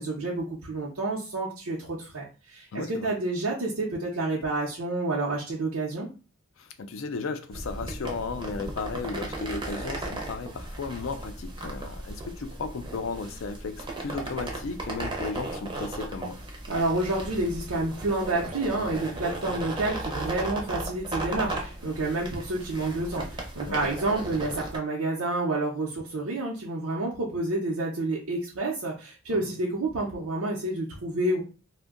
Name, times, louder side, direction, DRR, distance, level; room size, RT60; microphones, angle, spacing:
voice 1, 0.0-6.1 16.7-31.4, right 2 dB, 80° right, 0.7 m, -29 dB
voice 2, 2.7-3.1 6.6-16.4 23.7-23.9 29.3-29.5, left 4 dB, 65° left, 0.4 m, -35 dB
sound 1, 7.5-24.8, right 2 dB, 20° right, 0.5 m, -36 dB
2.6 x 2.1 x 3.6 m
head